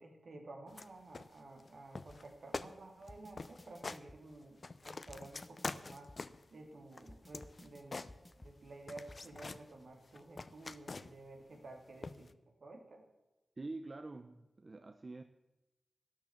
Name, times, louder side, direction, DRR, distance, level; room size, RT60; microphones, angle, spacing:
voice 1, 0.0-6.1 6.5-8.1 8.4-12.3 12.6-13.0, right 2 dB, 75° right, 2 dB, 2.8 m, -53 dB
sound 1, 0.7-0.9 1.1-1.7 2.0-2.3 2.5-2.7 3.0-3.1 3.4-4.0 4.4-6.5 6.9-8.6 8.9-9.7 10.1-11.3 12.0-12.3, left 3 dB, 55° left, 0.7 m, -45 dB
sound 2, 2.1-2.2 3.1-4.2 5.1-6.2 7.1-8.6 9.1-9.2, left 1 dB, 25° left, 1.0 m, -56 dB
voice 2, 13.6-15.2, right 2 dB, 50° right, 8 dB, 0.8 m, -46 dB
12.5 x 10.5 x 7.3 m, 1.0 s
cardioid pair, 40°, 0 cm